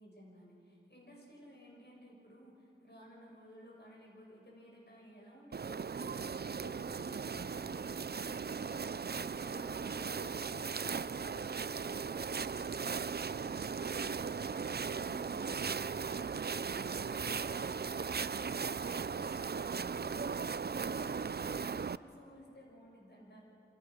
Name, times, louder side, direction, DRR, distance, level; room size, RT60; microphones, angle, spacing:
voice 1, 0.0-20.5 20.8-23.4, equal, 55° left, -2 dB, 7.4 m, -56 dB
sound 1, 5.5-22.0, right 5 dB, 50° right, 0.5 m, -37 dB
27.5 x 26.5 x 6.5 m, 3.0 s
wide cardioid pair, 45°, 21 cm